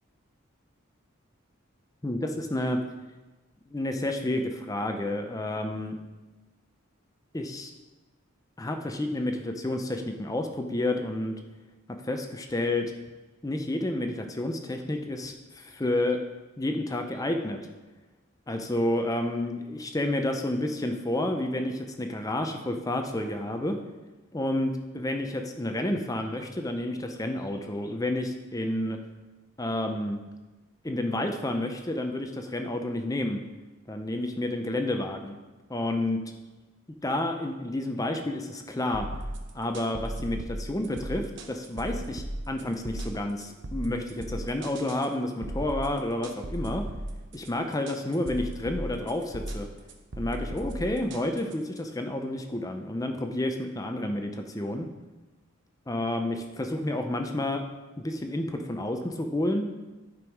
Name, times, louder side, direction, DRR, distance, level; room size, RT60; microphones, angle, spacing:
voice 1, 2.0-2.8 3.7-6.0 7.3-7.7 8.6-11.3 12.0-12.9 13.4-16.2 16.6-17.6 18.5-23.8 24.3-29.0 29.6-30.2 30.8-33.4 33.9-35.4 35.7-36.2 37.0-39.1 39.5-46.8 47.3-49.7 50.2-54.9 55.9-57.6 58.0-59.7, left 1 dB, 15° left, 5 dB, 0.6 m, -30 dB
sound 1, 38.9-51.8, right 1 dB, 55° right, 0.9 m, -37 dB
11.0 x 5.4 x 4.7 m, 1.2 s
head